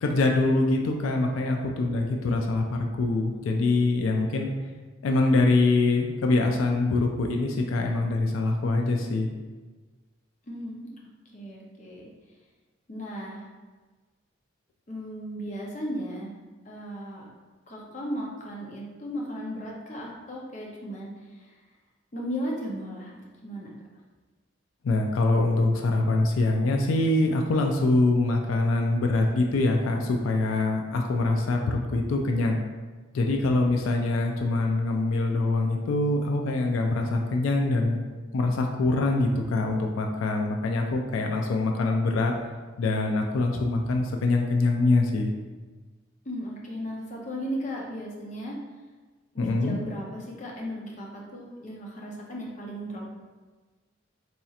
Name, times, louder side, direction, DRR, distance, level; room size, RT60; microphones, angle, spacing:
voice 1, 0.0-4.5 5.0-9.3 24.8-32.6 33.1-38.0 38.3-42.3 42.8-45.3 49.4-49.8, left 2 dB, 90° left, 2 dB, 0.4 m, -24 dB
voice 2, 10.5-10.9 11.3-12.1 12.9-13.5 14.9-16.3 16.7-17.2 17.7-21.6 22.1-23.7 46.2-48.6 49.3-53.1, equal, 35° left, -2 dB, 0.6 m, -36 dB
4.1 x 2.8 x 2.3 m, 1.3 s
head